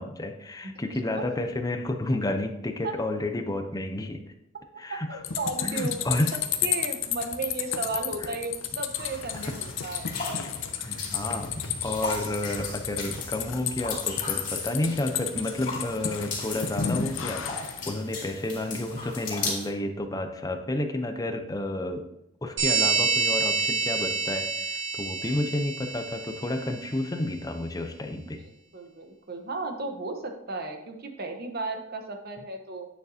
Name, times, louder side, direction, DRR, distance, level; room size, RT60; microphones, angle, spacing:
voice 1, 0.0-4.2 4.8-5.2 5.6-6.4 9.3-9.5 10.8-22.1 22.4-28.4, left 1 dB, 20° left, 6 dB, 0.6 m, -31 dB
voice 2, 4.9-6.0 6.6-10.1 25.2-25.3 28.2-28.3 28.7-32.9, right 3 dB, 55° right, 5 dB, 1.0 m, -34 dB
sound 1, 5.2-17.9, left 8 dB, 75° left, 0.7 m, -32 dB
sound 2, 9.0-19.7, left 3 dB, 45° left, 2.5 m, -37 dB
sound 3, 22.6-26.9, right 4 dB, 70° right, 2.2 m, -27 dB
9.3 x 6.6 x 2.8 m, 0.83 s
head